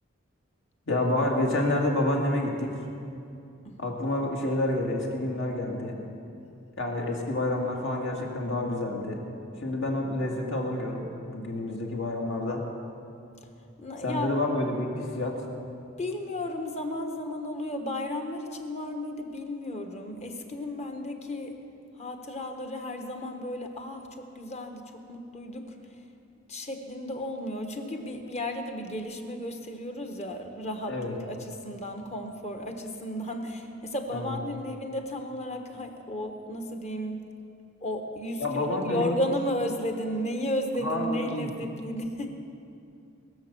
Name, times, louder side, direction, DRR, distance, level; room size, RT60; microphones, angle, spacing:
voice 1, 0.9-2.7 3.8-6.0 6.8-9.2 9.6-12.6 14.0-15.4 30.9-31.2 34.1-34.4 38.4-39.2 40.8-41.5, left 1 dB, 65° left, -1 dB, 2.2 m, -28 dB
voice 2, 3.6-4.0 13.8-14.3 16.0-21.6 22.0-25.8 26.5-37.2 37.8-42.3, left 1 dB, 35° left, 4 dB, 1.2 m, -34 dB
21.5 x 7.1 x 6.9 m, 2.6 s
head